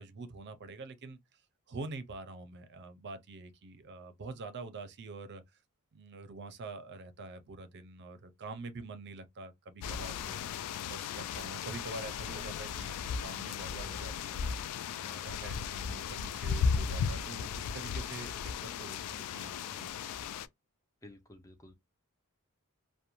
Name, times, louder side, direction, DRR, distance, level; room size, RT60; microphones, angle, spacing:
voice 1, 0.0-1.4 1.7-5.4 5.9-10.4 10.8-14.5 14.9-19.9, right 3 dB, 50° right, 0.5 m, -45 dB
sound 1, 9.8-20.5, left 6 dB, 85° left, 0.3 m, -36 dB
voice 2, 21.0-21.7, left 1 dB, 15° left, 0.4 m, -53 dB
2.5 x 2.1 x 2.9 m
head